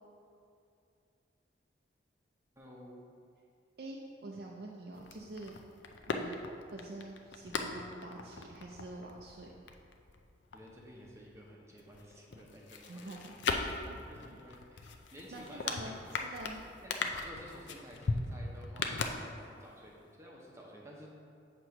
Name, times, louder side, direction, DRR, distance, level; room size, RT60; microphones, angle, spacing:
voice 1, 2.6-3.0 10.5-13.1 14.1-16.2 16.8-21.1, equal, 15° right, -3 dB, 0.8 m, -52 dB
voice 2, 3.8-5.5 6.1-6.4 6.7-9.5 12.8-13.3 13.9-14.4 15.3-16.6, right 2 dB, 55° right, -2 dB, 0.5 m, -46 dB
sound 1, 4.9-11.5 11.8-19.7 20.0-20.1, left 4 dB, 80° left, 0.5 m, -39 dB
7.9 x 3.0 x 5.7 m, 2.5 s
head